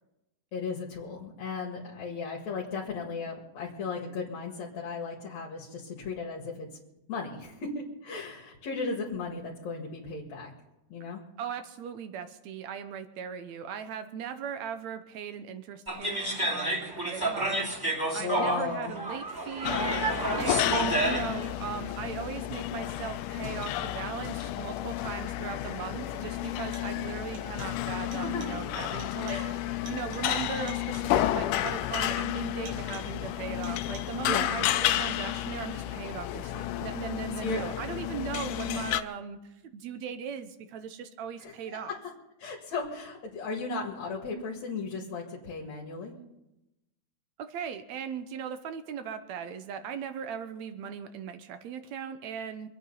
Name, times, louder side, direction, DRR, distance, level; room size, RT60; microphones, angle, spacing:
voice 1, 0.5-6.7 7.1-10.5 10.9-11.2 18.2-19.0 28.1-28.6 29.3-29.6 34.3-34.6 37.4-37.7 41.4-42.0 42.4-46.1, left 4 dB, 60° left, -1 dB, 3.0 m, -36 dB
voice 2, 11.4-20.0 20.4-29.4 29.9-42.0 47.4-52.7, right 7 dB, 70° right, 9 dB, 2.0 m, -38 dB
sound 1, 15.9-21.5, right 1 dB, 5° right, 2.6 m, -30 dB
sound 2, 19.6-39.0, left 13 dB, 85° left, 2.2 m, -31 dB
sound 3, 25.5-25.6 26.5-27.1 27.3-27.9 28.1-28.7 29.0-29.6 29.9-31.2 31.7-32.2 32.7-33.2 33.6-34.3 34.6-35.3, right 4 dB, 90° right, 4.7 m, -52 dB
24.5 x 8.9 x 5.5 m, 0.93 s
omnidirectional pair, 3.6 m